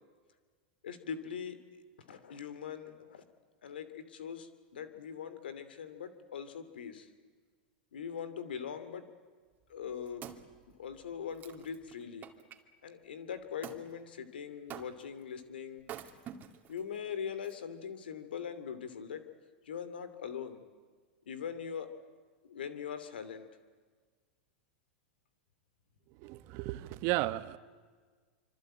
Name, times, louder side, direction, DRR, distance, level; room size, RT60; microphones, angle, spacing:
voice 1, 0.8-1.6 2.1-3.2 3.6-7.1 7.9-9.1 9.7-10.3 10.8-12.3 12.8-15.8 16.7-19.2 19.7-20.6 21.3-22.0 22.4-23.5, left 7 dB, 85° left, 12 dB, 2.8 m, -41 dB
Wood, 9.6-12.6 13.6-13.9 14.7-15.2 15.8-16.8 17.4-17.5, right 9 dB, 35° right, 2.5 m, -48 dB
voice 2, 26.2-27.6, right 18 dB, 50° right, 13 dB, 1.3 m, -34 dB
26.0 x 25.5 x 8.9 m, 1.5 s
hypercardioid pair, 105°, 5 cm